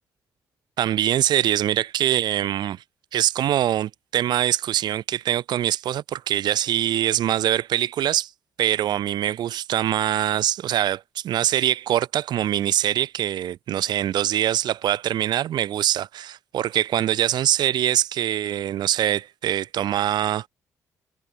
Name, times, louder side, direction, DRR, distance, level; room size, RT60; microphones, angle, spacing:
voice 1, 0.8-2.8 3.1-8.3 8.6-20.5, right 11 dB, 75° right, 7.8 m, -23 dB
supercardioid pair, 65°, 7 cm